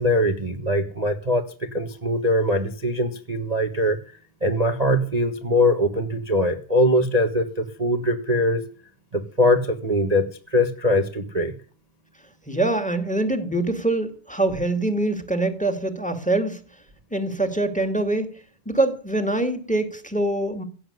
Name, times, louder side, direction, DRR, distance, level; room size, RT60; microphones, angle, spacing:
voice 1, 0.0-1.4 1.7-4.0 4.4-8.6 9.1-11.5, left 1 dB, 80° right, 7 dB, 0.3 m, -22 dB
voice 2, 12.5-16.6 17.1-18.3 18.6-20.6, right 2 dB, 5° left, 7 dB, 1.6 m, -24 dB
17.0 x 7.9 x 9.5 m, 0.41 s
omnidirectional pair, 3.7 m